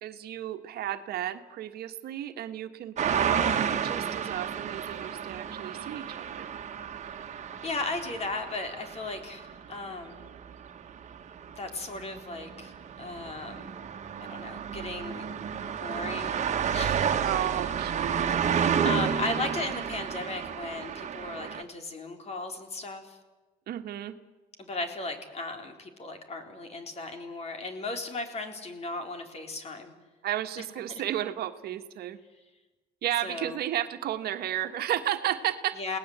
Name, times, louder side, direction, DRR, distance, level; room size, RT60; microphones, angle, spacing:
voice 1, 0.0-3.5 3.8-6.5 17.2-18.1 23.7-24.2 30.2-32.2 33.0-35.8, right 12 dB, 70° right, 7 dB, 1.5 m, -33 dB
sound 1, 3.0-21.6, right 7 dB, 45° right, 1.8 m, -31 dB
voice 2, 7.6-10.3 11.6-12.7 13.0-13.8 14.2-15.2 15.8-16.4 16.7-17.0 18.8-23.2 24.6-29.9 30.6-30.7 33.2-33.6 35.8-36.0, left 3 dB, 40° left, 5 dB, 3.9 m, -36 dB
29.0 x 18.5 x 8.1 m, 1.2 s
cardioid pair, 110°, 17 cm